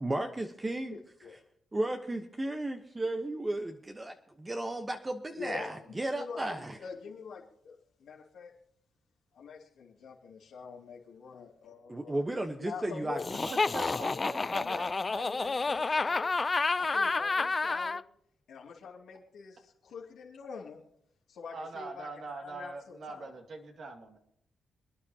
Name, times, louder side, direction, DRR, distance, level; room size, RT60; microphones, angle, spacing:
voice 1, 0.0-1.0 1.7-6.8 11.9-13.5, right 1 dB, 20° right, 5 dB, 1.1 m, -34 dB
voice 2, 0.8-1.4 5.4-6.5 6.8-8.5 9.3-12.1 12.6-13.2 13.7-16.3 16.8-18.0 18.5-20.8 21.3-23.3, left 5 dB, 80° left, -3 dB, 2.7 m, -45 dB
Laughter, 13.2-18.0, left 3 dB, 30° left, 0.5 m, -30 dB
voice 3, 13.5-14.9 15.1-15.5 21.5-24.2, right 3 dB, 60° right, 3 dB, 2.3 m, -43 dB
27.5 x 9.8 x 2.9 m, 0.72 s
cardioid pair, 90°, 0 cm